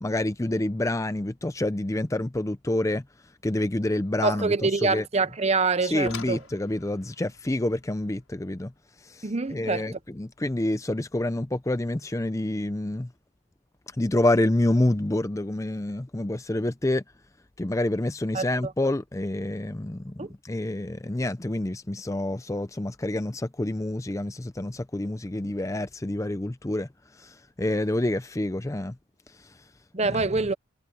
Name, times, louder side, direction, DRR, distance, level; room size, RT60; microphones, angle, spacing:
voice 1, 0.0-3.0 3.4-5.0 5.9-8.7 9.1-13.1 14.0-17.0 17.6-26.9 27.2-28.9 30.1-30.2, left 1 dB, 15° left, 0.5 m, -28 dB
voice 2, 4.2-6.4 9.2-9.9 18.3-18.7 20.2-20.3 29.9-30.5, right 4 dB, 30° right, 0.8 m, -25 dB
sound 1, 5.9-10.8 12.2-12.3 12.9-13.1 13.4-13.5, left 6 dB, 90° left, 6.1 m, -47 dB
head